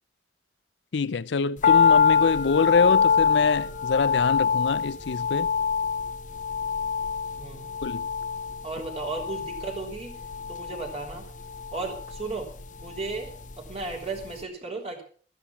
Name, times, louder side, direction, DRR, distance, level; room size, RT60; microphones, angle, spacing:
voice 1, 0.9-5.5 7.8-8.1, left 4 dB, 70° left, 0.5 m, -25 dB
sound 1, 1.6-13.9 14.2-14.3, left 6 dB, 45° left, 0.8 m, -25 dB
voice 2, 8.6-10.1 10.5-11.3 11.7-13.3 13.6-15.0, right 3 dB, 35° right, 3.5 m, -35 dB
13.5 x 10.0 x 6.0 m
head